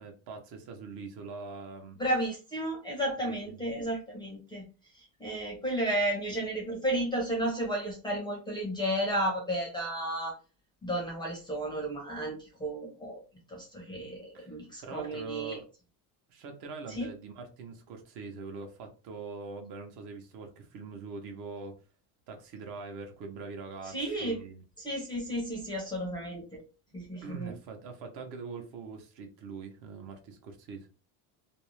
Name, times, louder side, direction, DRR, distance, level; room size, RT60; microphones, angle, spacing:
voice 1, 0.0-2.0 3.2-3.7 14.3-14.5 14.8-15.7 16.3-21.8 22.3-24.6 27.2-30.9, right 4 dB, 55° right, 0.8 m, -43 dB
voice 2, 2.0-4.6 5.2-10.3 10.8-13.2 13.5-15.6 17.0-17.1 23.9-24.4 24.8-26.6 26.9-27.5, right 1 dB, 10° left, 0.5 m, -33 dB
2.5 x 2.0 x 3.0 m
cardioid pair, 155°, 45 cm